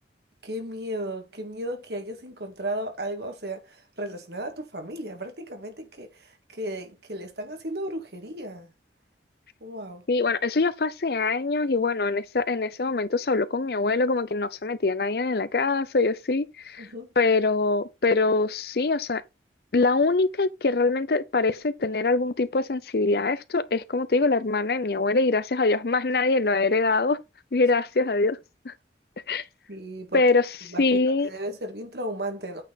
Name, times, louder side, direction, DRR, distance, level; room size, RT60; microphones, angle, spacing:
voice 1, 0.4-8.7 9.6-10.0 16.8-17.1 29.7-30.2 30.7-32.6, right 1 dB, 65° right, 1.9 m, -35 dB
voice 2, 10.1-16.9 17.2-19.2 19.7-27.2 27.5-28.4 28.6-28.7 29.3-29.4 30.1-30.5 30.8-31.3, left 3 dB, 55° left, 0.6 m, -23 dB
8.6 x 4.4 x 4.0 m
head